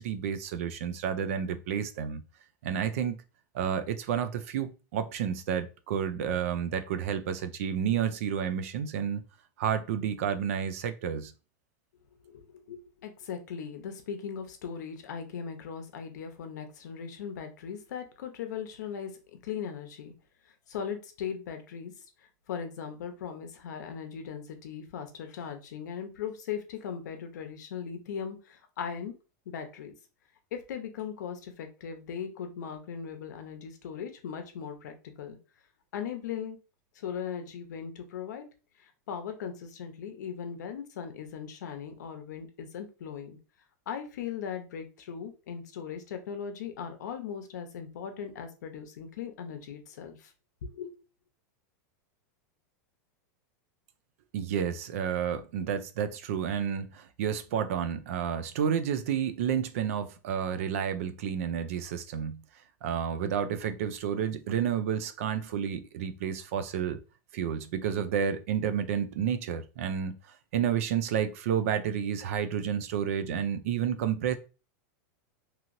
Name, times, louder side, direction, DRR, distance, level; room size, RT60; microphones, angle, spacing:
voice 1, 0.0-2.2 2.6-3.2 3.5-9.2 9.6-11.3 54.3-62.4 62.8-67.0 67.3-70.2 70.5-74.4, right 8 dB, 55° right, 0.4 m, -30 dB
voice 2, 12.2-19.1 19.4-20.1 20.7-21.9 22.5-29.1 29.5-29.9 30.5-35.4 35.9-36.6 36.9-38.5 38.8-43.4 43.9-50.3 50.6-50.9, left 7 dB, 90° left, 0.7 m, -38 dB
2.9 x 2.8 x 2.5 m
supercardioid pair, 175°, 9 cm